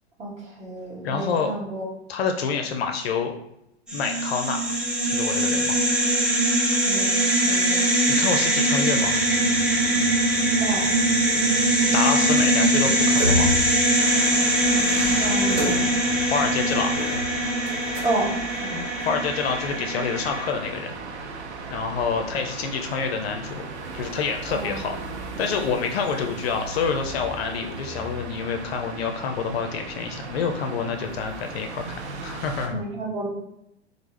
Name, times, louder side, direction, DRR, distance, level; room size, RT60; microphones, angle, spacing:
voice 1, 0.2-1.8 6.8-7.8 10.6-10.9 15.2-15.9 18.0-18.3 18.6-18.9 24.5-24.8 32.7-33.3, right 2 dB, 20° right, -5 dB, 1.1 m, -30 dB
voice 2, 1.0-1.5 2.1-3.3 3.9-4.6 5.0-5.8 8.1-9.1 11.9-13.5 16.2-16.9 19.0-21.0 21.7-23.6 23.9-25.0 25.4-32.8, left 5 dB, 60° left, 5 dB, 0.5 m, -27 dB
sound 1, 3.9-20.5, right 1 dB, 5° right, 0.3 m, -22 dB
sound 2, 8.9-18.6, left 1 dB, 50° right, 1.0 m, -33 dB
sound 3, 14.0-32.7, right 3 dB, 75° right, 0.6 m, -37 dB
3.3 x 2.0 x 3.1 m, 0.81 s
figure-of-eight pair, 100°, 34 cm